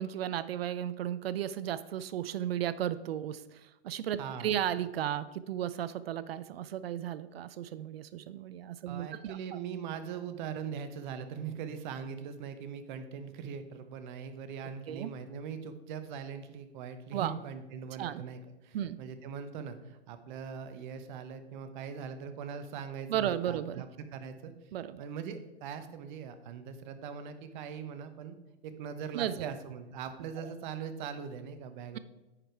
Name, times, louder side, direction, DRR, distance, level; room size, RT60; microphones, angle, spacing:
voice 1, 0.0-9.6 14.9-15.1 17.1-17.3 18.0-18.2 18.7-19.0 23.1-23.8 24.7-25.0 29.1-29.5 30.4-30.5, right 10 dB, 65° right, 15 dB, 0.5 m, -34 dB
voice 2, 4.2-4.5 8.9-23.9 24.1-24.5 25.0-28.4 28.6-32.0, right 7 dB, 45° right, 9 dB, 1.0 m, -41 dB
9.9 x 4.9 x 4.5 m, 1.0 s
hypercardioid pair, 120°, 33 cm